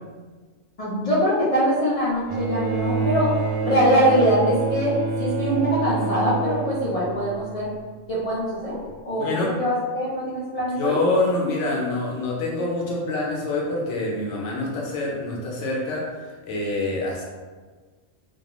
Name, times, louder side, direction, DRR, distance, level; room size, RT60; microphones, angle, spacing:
voice 1, 0.8-3.3 3.6-7.7 8.1-8.7 9.0-9.3 9.6-10.9, equal, 45° left, -7 dB, 0.5 m, -22 dB
Bowed string instrument, 2.3-7.7 8.9-9.0, right 4 dB, 65° right, 0.7 m, -27 dB
voice 2, 9.2-9.5 10.8-16.1 16.4-17.2, left 2 dB, 85° left, -2 dB, 0.9 m, -25 dB
2.3 x 2.2 x 2.9 m, 1.4 s
omnidirectional pair, 1.2 m